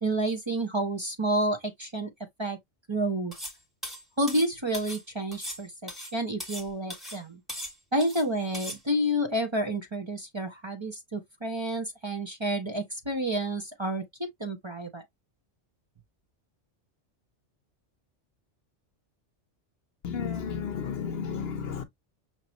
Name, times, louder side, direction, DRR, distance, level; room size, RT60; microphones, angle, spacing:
voice 1, 0.0-2.1 2.4-2.6 2.9-3.3 4.2-7.4 7.9-15.0, right 1 dB, 25° right, 0.9 m, -29 dB
sound 1, 3.3-3.6 3.8-5.0 5.3-6.7 6.9-7.2 7.5-8.2 8.5-8.8, equal, ahead, 1.8 m, -39 dB
voice 2, 20.0-21.8, left 7 dB, 65° left, 0.9 m, -32 dB
6.0 x 2.8 x 2.7 m
omnidirectional pair, 1.2 m